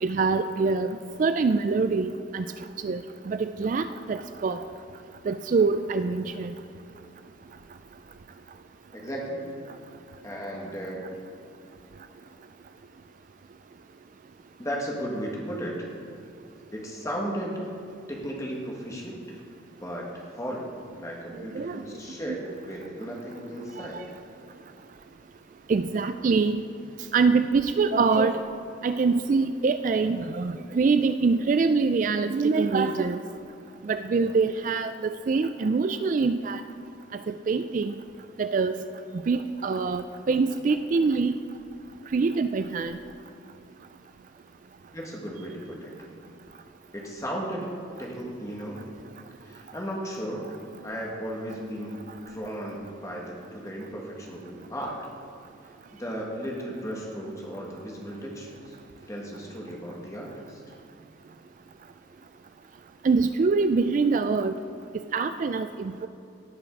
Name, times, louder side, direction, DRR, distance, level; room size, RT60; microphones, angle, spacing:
voice 1, 0.0-2.4 2.8-4.6 5.3-6.5 21.5-21.8 22.3-22.4 23.8-24.0 25.7-26.6 27.1-28.4 28.8-33.2 33.8-36.6 37.1-37.9 38.4-38.7 39.3-41.4 42.1-43.0 63.0-64.6 64.9-66.1, right 4 dB, 40° right, 10 dB, 0.3 m, -24 dB
voice 2, 8.9-9.5 10.2-11.2 14.6-15.9 16.7-17.6 18.1-19.4 19.8-20.7 20.9-24.0 44.9-45.9 46.9-47.7 48.0-48.9 49.4-50.6 50.8-55.0 55.9-58.8 59.1-60.7, equal, 15° left, -2 dB, 1.7 m, -35 dB
17.5 x 5.8 x 5.3 m, 2.7 s
head